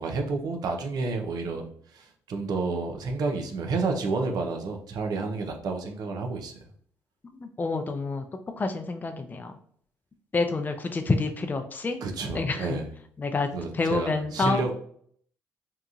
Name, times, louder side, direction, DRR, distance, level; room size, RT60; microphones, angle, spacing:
voice 1, 0.0-1.6 1.9-6.5 12.0-12.9 13.5-14.7, right 3 dB, 60° right, 4 dB, 0.5 m, -30 dB
voice 2, 7.4-8.2 8.6-9.5 10.3-12.0 12.3-12.8 13.2-13.5 13.7-14.7, left 3 dB, 25° left, 6 dB, 0.3 m, -28 dB
2.8 x 2.3 x 2.3 m, 0.62 s
hypercardioid pair, 55°, 7 cm